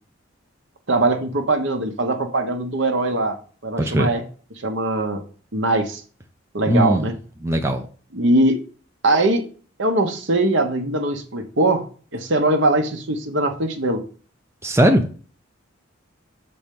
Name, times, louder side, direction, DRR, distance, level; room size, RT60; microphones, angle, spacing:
voice 1, 0.9-3.3 3.6-4.2 4.6-5.2 5.5-6.0 6.5-7.1 8.1-8.6 9.0-9.4 9.8-11.8 12.1-14.0, right 2 dB, 65° right, 1.1 m, -21 dB
voice 2, 3.8-4.1 6.7-7.1 7.4-7.9 14.6-15.1, equal, 15° right, 0.6 m, -18 dB
6.1 x 4.3 x 5.3 m
head